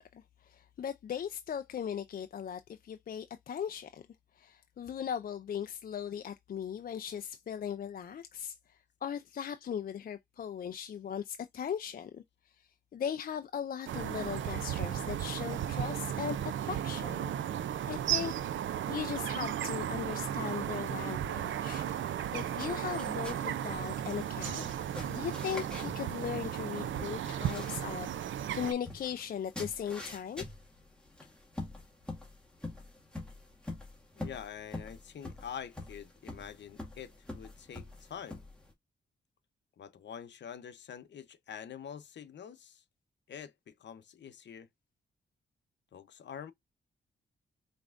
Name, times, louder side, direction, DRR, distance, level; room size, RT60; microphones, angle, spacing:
voice 1, 0.0-4.0 4.4-8.6 9.0-12.2 12.9-16.4 16.7-17.3 17.9-18.3 18.9-24.6 25.1-28.1 28.5-30.4, left 8 dB, 50° left, 0.4 m, -38 dB
sound 1, 13.9-28.7, right 10 dB, 90° right, 0.5 m, -35 dB
sound 2, 21.9-38.7, left 2 dB, 5° left, 2.0 m, -46 dB
voice 2, 34.2-38.4 39.8-42.8 43.3-44.7 45.9-46.5, left 8 dB, 70° left, 0.8 m, -46 dB
5.3 x 3.5 x 2.5 m
wide cardioid pair, 150°, 19 cm